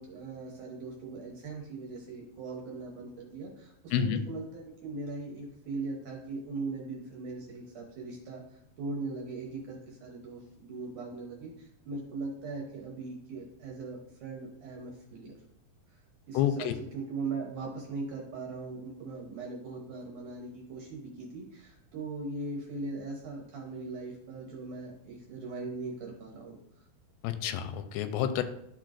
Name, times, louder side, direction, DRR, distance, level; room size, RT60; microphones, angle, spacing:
voice 1, 0.0-8.4 8.8-15.3 16.3-26.6, right 3 dB, 70° right, -1 dB, 2.0 m, -40 dB
voice 2, 16.3-16.7 27.2-28.4, left 10 dB, 90° left, 9 dB, 2.7 m, -29 dB
12.0 x 4.4 x 2.5 m, 0.78 s
omnidirectional pair, 4.6 m